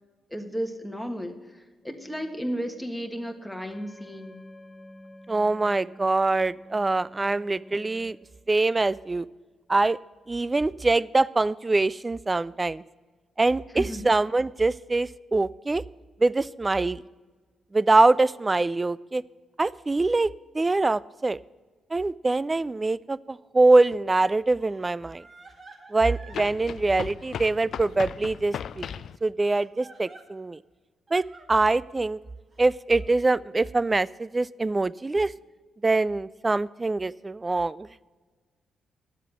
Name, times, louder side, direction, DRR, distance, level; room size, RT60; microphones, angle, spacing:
voice 1, 0.3-4.4 13.7-14.0, equal, 5° left, 4 dB, 1.5 m, -34 dB
sound 1, 1.8-8.2, left 1 dB, 25° left, 2.0 m, -49 dB
voice 2, 5.3-8.2 8.5-9.3 9.7-10.0 10.3-12.8 13.4-15.8 16.2-17.0 17.7-19.2 19.6-21.4 21.9-25.2 25.9-28.9 29.2-30.6 31.1-32.2 32.6-35.3 35.8-37.9, right 2 dB, 25° right, 21 dB, 0.3 m, -24 dB
Crying sobbing, 23.7-23.8 24.6-26.4 27.2-28.0 29.4-30.2 31.1-31.5 32.5-33.1, right 3 dB, 45° right, 2.1 m, -51 dB
sound 2, 23.9-24.0 26.3-29.2, left 8 dB, 65° left, 0.3 m, -37 dB
10.5 x 7.5 x 7.8 m, 1.4 s
hypercardioid pair, 45°, 0 cm